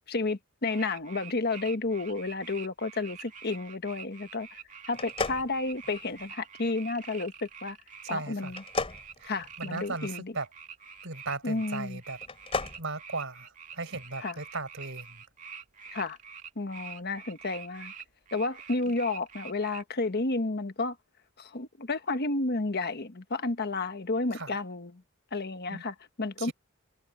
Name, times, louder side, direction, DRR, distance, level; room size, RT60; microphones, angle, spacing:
voice 1, 0.1-4.6 4.9-7.8 8.1-8.6 9.2-10.3 11.4-12.0 14.2-14.4 15.9-16.2 16.6-17.9 18.3-21.0 21.4-25.0 25.3-26.5, left 3 dB, 45° left, 1.3 m, -31 dB
sound 1, 0.6-19.8, right 6 dB, 35° right, 2.3 m, -47 dB
sound 2, 4.9-6.3 8.5-10.1 12.1-12.8, left 3 dB, 25° left, 3.0 m, -34 dB
voice 2, 8.0-8.5 9.2-9.3 9.6-10.5 11.0-12.2 12.8-15.2 18.9-19.0 24.3-24.5 25.7-25.8 26.4-26.5, right 3 dB, 60° right, 5.2 m, -37 dB
head